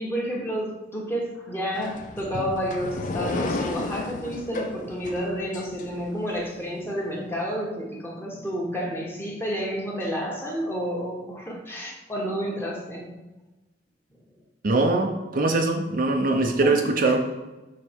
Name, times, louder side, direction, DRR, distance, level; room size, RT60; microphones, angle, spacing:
voice 1, 0.0-13.1 16.6-16.8, equal, 15° left, -2 dB, 1.3 m, -30 dB
sound 1, 1.7-6.4, left 2 dB, 45° left, 0.4 m, -33 dB
voice 2, 14.6-17.2, right 2 dB, 50° right, 3 dB, 0.6 m, -22 dB
6.4 x 4.0 x 4.5 m, 1.1 s
head